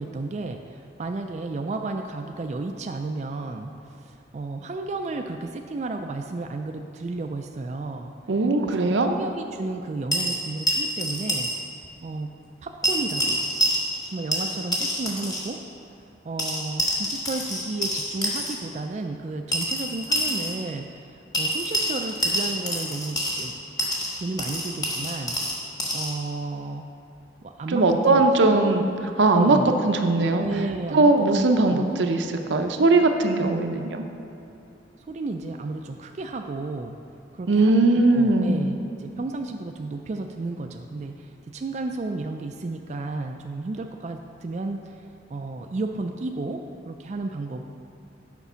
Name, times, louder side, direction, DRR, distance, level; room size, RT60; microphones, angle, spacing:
voice 1, 0.0-3.7 4.0-8.1 8.6-11.5 12.0-12.3 12.6-13.4 14.1-15.6 16.2-23.5 24.2-25.4 25.9-26.8 27.4-28.8 29.3-29.8 30.4-32.0 35.1-37.0 37.3-45.0 45.3-47.6, right 3 dB, 40° right, 4 dB, 0.3 m, -33 dB
voice 2, 8.3-9.1 27.7-28.8 29.2-30.5 30.9-34.0 37.5-38.6, right 2 dB, 80° right, 5 dB, 0.6 m, -20 dB
sound 1, 10.1-11.6 11.8-11.9 12.8-14.1 14.3-15.5 16.4-18.5 19.5-20.6 21.3-23.5 23.8-26.1, equal, 20° left, 1.3 m, -27 dB
8.2 x 5.2 x 5.6 m, 2.8 s
head